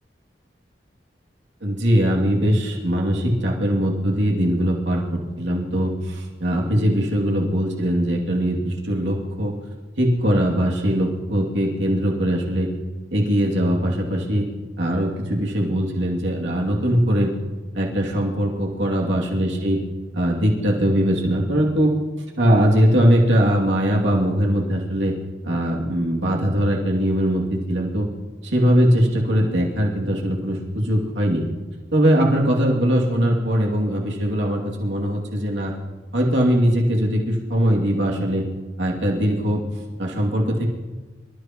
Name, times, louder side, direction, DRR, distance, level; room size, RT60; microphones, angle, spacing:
voice 1, 1.6-9.5 10.0-12.7 13.1-14.5 14.8-17.3 17.7-19.8 20.1-21.9 22.4-25.1 25.4-28.1 28.4-31.4 31.9-35.7 36.1-38.4 38.8-39.6 40.0-40.7, equal, 85° right, -2 dB, 2.6 m, -21 dB
26.5 x 13.5 x 3.0 m, 1.3 s
head